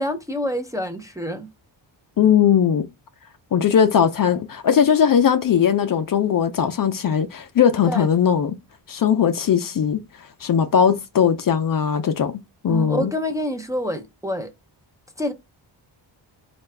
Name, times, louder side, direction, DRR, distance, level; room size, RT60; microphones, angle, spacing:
voice 1, 0.0-1.5 7.9-8.1 12.7-14.5 15.2-15.3, equal, 5° right, 0.5 m, -27 dB
voice 2, 2.2-2.9 3.5-8.6 8.9-10.0 10.4-12.3 12.6-13.1, left 8 dB, 50° left, 0.5 m, -19 dB
4.4 x 2.3 x 3.2 m
wide cardioid pair, 110°, 46 cm